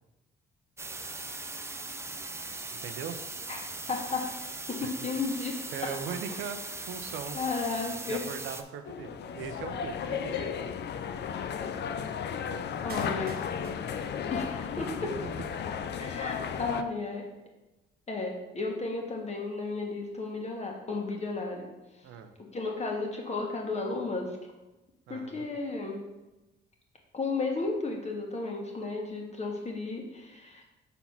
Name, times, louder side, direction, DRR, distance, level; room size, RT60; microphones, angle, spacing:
sound 1, 0.8-8.6, right 2 dB, 15° right, 0.5 m, -39 dB
voice 1, 2.8-3.2 4.8-4.9 5.7-6.6 6.9-7.4 8.1-10.6 22.0-22.3 25.1-25.5, right 7 dB, 80° right, 7 dB, 0.7 m, -39 dB
voice 2, 3.9-4.2 4.7-5.6 7.3-8.2 12.8-13.4 14.3-15.2 16.0-17.2 18.1-21.6 22.4-24.4 25.1-26.0 27.1-30.6, left 3 dB, 35° left, 1 dB, 1.6 m, -33 dB
sound 2, 8.8-16.8, left 7 dB, 60° left, 0.5 m, -34 dB
Clapping, 12.9-14.9 15.1-15.2, right 3 dB, 50° right, 1.2 m, -48 dB
5.6 x 4.2 x 5.9 m, 1.1 s
cardioid pair, 90°, 20 cm